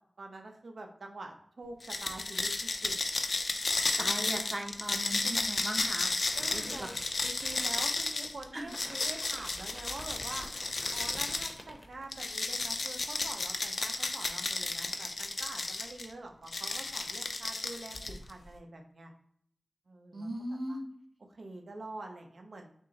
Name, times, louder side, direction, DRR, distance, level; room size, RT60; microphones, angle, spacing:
voice 1, 0.2-2.9 6.4-6.9 7.2-10.5 10.9-19.1 19.9-20.3 20.7-20.8 21.3-22.7, right 2 dB, 80° right, 3 dB, 0.7 m, -46 dB
sound 1, 1.8-11.6 12.1-16.1 16.5-18.3, left 3 dB, 70° left, 0.5 m, -33 dB
voice 2, 4.0-6.1 6.5-6.9 8.5-8.7 20.1-20.9, right 1 dB, 30° right, 2 dB, 0.7 m, -38 dB
sound 2, 4.7-12.4 12.6-13.3, equal, 10° left, 0.7 m, -48 dB
6.0 x 2.0 x 3.9 m, 0.66 s
wide cardioid pair, 90°, 0 cm